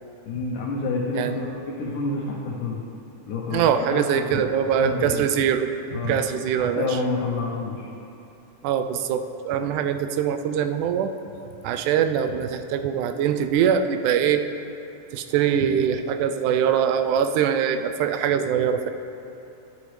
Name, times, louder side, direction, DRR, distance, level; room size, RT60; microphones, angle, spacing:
voice 1, 0.3-2.8 3.3-3.6 3.9-4.5 4.8-5.3 5.9-6.2 6.6-7.8, left 3 dB, 90° left, -4 dB, 2.4 m, -28 dB
voice 2, 3.5-5.7 6.0-7.0 8.6-11.1 11.6-14.4 15.1-18.9, right 8 dB, 85° right, 8 dB, 2.0 m, -23 dB
12.0 x 9.3 x 3.3 m, 2.8 s
omnidirectional pair, 3.5 m